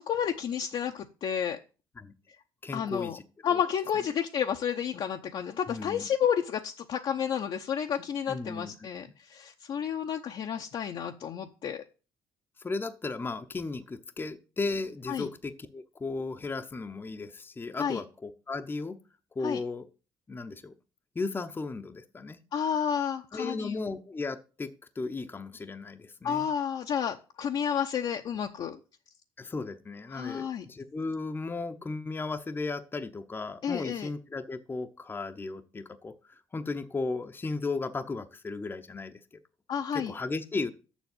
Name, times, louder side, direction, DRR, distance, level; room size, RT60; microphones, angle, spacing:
voice 1, 0.0-1.6 2.7-3.2 3.4-11.8 15.1-15.3 17.8-18.0 19.4-19.6 22.5-23.8 26.2-28.8 30.1-30.6 33.6-34.1 39.7-40.1, left 8 dB, 55° left, 0.8 m, -31 dB
voice 2, 2.6-3.2 3.5-3.6 5.7-6.1 8.3-8.7 12.6-19.0 19.4-19.8 20.3-20.7 21.1-22.4 23.3-24.7 25.0-26.5 29.4-39.2 39.9-40.7, left 3 dB, 20° left, 0.8 m, -35 dB
7.2 x 6.4 x 7.8 m
cardioid pair, 95°, 10 cm